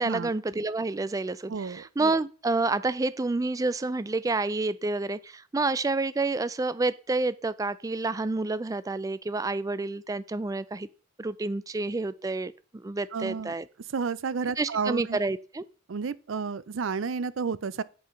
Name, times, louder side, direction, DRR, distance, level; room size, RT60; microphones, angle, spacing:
voice 1, 0.0-10.9 11.2-13.7 14.6-15.6, right 3 dB, 15° right, 0.3 m, -29 dB
voice 2, 1.5-1.8 13.1-13.5 13.9-15.2 15.9-17.8, right 5 dB, 75° right, 0.5 m, -31 dB
7.7 x 5.6 x 5.1 m
head